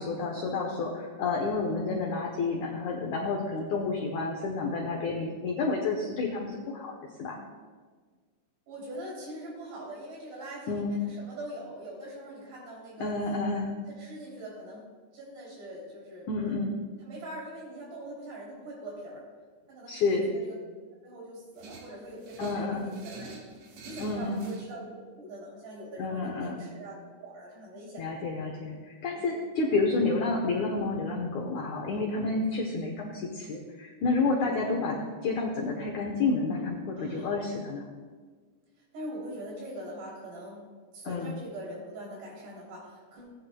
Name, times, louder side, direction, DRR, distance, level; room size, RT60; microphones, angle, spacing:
voice 1, 0.0-6.9 7.2-7.4 10.7-11.0 13.0-13.7 16.3-16.8 19.9-20.3 22.4-22.9 24.0-24.4 26.0-26.6 28.0-35.0 35.2-37.8 41.1-41.4, left 3 dB, 80° left, -1 dB, 1.7 m, -30 dB
voice 2, 8.7-13.1 13.9-14.9 15.1-16.5 17.0-19.2 19.7-20.6 21.0-23.3 23.8-27.0 27.2-28.0 29.2-29.3 31.9-32.1 37.0-37.3 38.8-40.6 40.9-43.4, right 1 dB, 80° right, -4 dB, 5.2 m, -42 dB
sound 1, 21.6-24.7, right 3 dB, 65° right, 1.8 m, -46 dB
17.5 x 9.3 x 2.2 m, 1.5 s
omnidirectional pair, 4.7 m